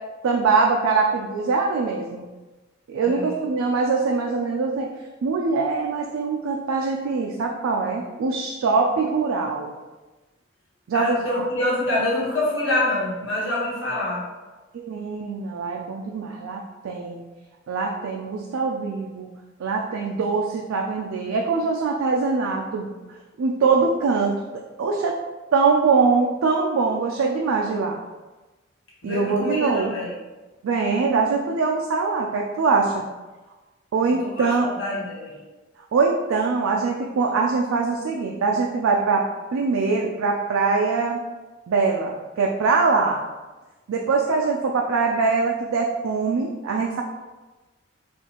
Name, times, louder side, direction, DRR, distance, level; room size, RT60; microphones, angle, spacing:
voice 1, 0.2-2.3 2.9-4.9 5.2-9.7 10.9-11.2 14.7-17.2 17.7-19.3 19.6-22.9 23.4-24.3 24.8-25.2 25.5-28.0 29.0-29.9 30.6-33.0 33.9-34.7 35.9-39.2 39.5-41.2 41.7-43.2 43.9-47.0, right 4 dB, 85° right, 0 dB, 0.4 m, -23 dB
voice 2, 10.9-14.3 29.0-30.1 34.2-35.4, left 1 dB, 65° left, -6 dB, 1.2 m, -26 dB
4.3 x 2.4 x 2.9 m, 1.2 s
head